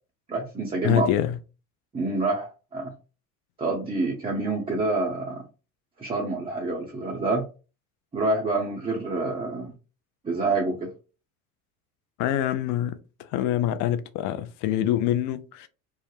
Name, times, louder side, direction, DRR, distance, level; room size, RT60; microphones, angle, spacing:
voice 1, 0.3-1.1 1.9-2.9 3.6-5.4 6.0-7.4 8.1-9.7 10.2-10.9, right 3 dB, 15° right, 0.6 m, -27 dB
voice 2, 0.8-1.4 12.2-13.0 13.3-15.7, left 11 dB, 45° left, 0.4 m, -25 dB
2.3 x 2.1 x 3.1 m
hypercardioid pair, 70°, 44 cm